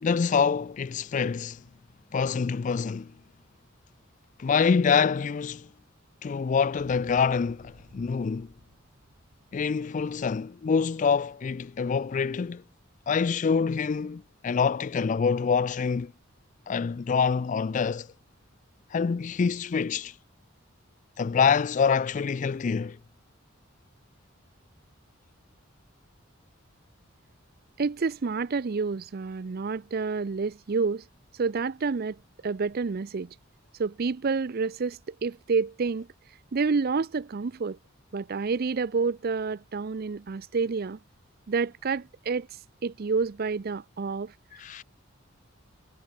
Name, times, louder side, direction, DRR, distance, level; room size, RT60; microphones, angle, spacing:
voice 1, 0.0-1.6 2.1-3.1 4.4-5.7 6.2-8.5 9.5-12.6 13.1-16.1 16.7-18.1 18.9-20.1 21.2-23.0 44.6-44.8, left 6 dB, 40° left, 0.3 m, -26 dB
Motorcycle, 6.8-10.7, right 1 dB, 90° right, 2.8 m, -56 dB
voice 2, 27.8-31.0 31.3-33.3 33.8-36.1 36.5-37.8 38.1-41.0 41.5-42.5 42.8-44.3, right 4 dB, 50° right, 0.5 m, -29 dB
head